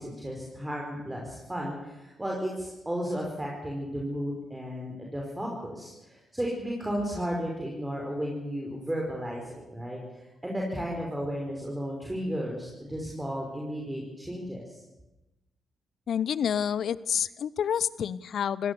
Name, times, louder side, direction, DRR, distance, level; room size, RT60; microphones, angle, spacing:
voice 1, 0.0-10.0 10.4-14.8, equal, 15° right, -1 dB, 5.4 m, -34 dB
voice 2, 16.1-18.7, left 8 dB, 60° left, 20 dB, 0.7 m, -28 dB
23.5 x 17.5 x 7.1 m, 1.0 s
hypercardioid pair, 40°, 0 cm